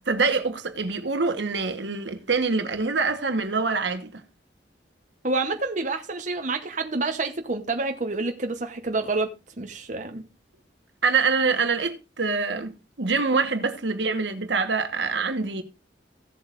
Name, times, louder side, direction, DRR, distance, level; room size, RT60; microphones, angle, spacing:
voice 1, 0.0-4.2 11.0-15.6, right 4 dB, 80° right, 1.3 m, -25 dB
voice 2, 5.2-9.3 9.6-10.2, right 3 dB, 45° right, 0.9 m, -28 dB
16.0 x 7.7 x 2.5 m
head